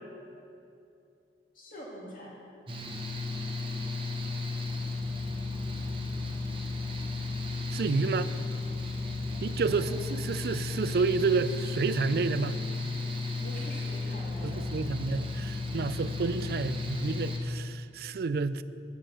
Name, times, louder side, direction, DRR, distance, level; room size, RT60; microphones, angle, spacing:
voice 1, 1.5-2.4 9.7-10.0 13.3-14.6, equal, 50° left, -4 dB, 2.3 m, -44 dB
Mechanical fan, 2.7-17.4, left 3 dB, 30° right, 0.9 m, -34 dB
voice 2, 7.7-8.3 9.4-12.6 14.4-18.6, right 4 dB, 55° right, 14 dB, 0.3 m, -30 dB
9.1 x 7.5 x 6.8 m, 2.6 s
head